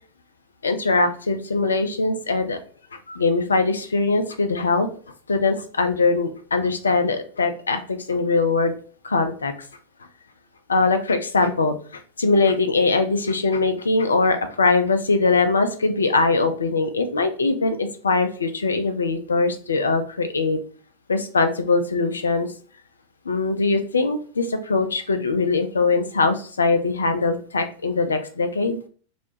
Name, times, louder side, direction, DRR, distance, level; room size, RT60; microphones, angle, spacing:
voice 1, 0.6-2.6 2.9-4.9 5.3-8.7 9.0-9.5 10.7-20.6 21.1-22.5 23.3-28.8, left 3 dB, 75° left, 8 dB, 0.3 m, -21 dB
2.2 x 2.0 x 3.0 m, 0.43 s
figure-of-eight pair, 90°, 0 cm